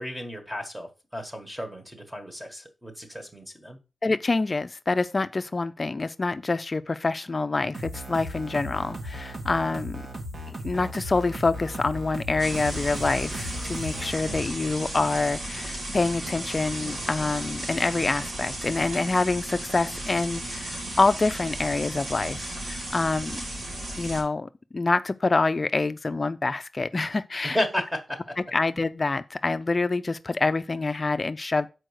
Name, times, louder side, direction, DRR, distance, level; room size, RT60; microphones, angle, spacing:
voice 1, 0.0-3.8 27.5-28.4, left 1 dB, 10° right, 1.5 m, -33 dB
voice 2, 4.0-10.0 10.6-23.4 24.0-27.6 28.4-31.7, left 3 dB, 35° left, 0.4 m, -26 dB
sound 1, 7.7-14.1, equal, 55° right, 1.6 m, -36 dB
sound 2, 12.4-24.2, right 1 dB, 75° right, 2.4 m, -35 dB
6.3 x 4.6 x 6.3 m
wide cardioid pair, 140°, 0 cm